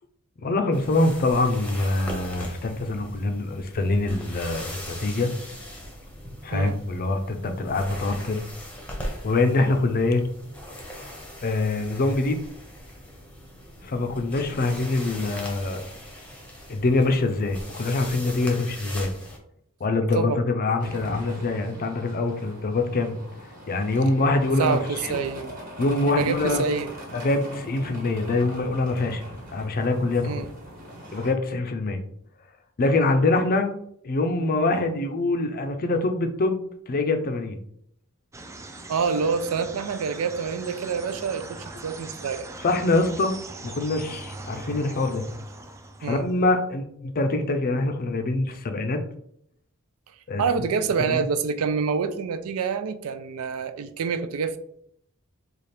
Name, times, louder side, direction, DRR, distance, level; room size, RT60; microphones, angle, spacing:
voice 1, 0.4-5.3 6.4-8.4 9.2-10.2 11.4-12.4 13.8-15.8 16.7-19.1 19.8-23.2 23.7-25.2 25.8-26.7 27.1-29.2 29.5-30.4 31.1-32.0 32.8-33.7 34.0-36.6 36.9-37.6 42.6-43.3 43.6-45.2 46.0-49.0 50.3-50.4 51.1-51.2, left 2 dB, 45° left, 0.5 m, -24 dB
sound 1, 0.7-19.4, equal, 5° left, 0.7 m, -40 dB
sound 2, 20.8-31.3, equal, 40° right, 1.2 m, -41 dB
voice 2, 24.6-25.6 26.1-26.9 30.2-30.5 38.9-42.5 46.0-46.2 50.1-54.6, right 5 dB, 85° right, 0.4 m, -27 dB
sound 3, 38.3-46.4, right 2 dB, 15° right, 0.3 m, -41 dB
4.1 x 2.4 x 3.3 m
head